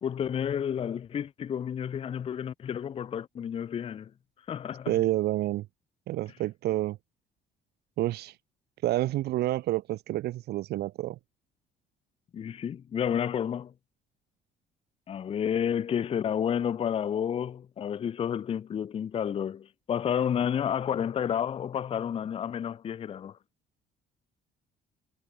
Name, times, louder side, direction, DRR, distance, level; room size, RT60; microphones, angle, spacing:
voice 1, 0.0-4.1 4.5-5.0 12.3-13.7 15.1-23.4, left 8 dB, 35° left, 0.5 m, -30 dB
voice 2, 4.9-5.6 6.1-7.0 8.0-8.3 8.8-11.2, right 15 dB, 75° right, 1.5 m, -29 dB
cardioid pair, 110°, 17 cm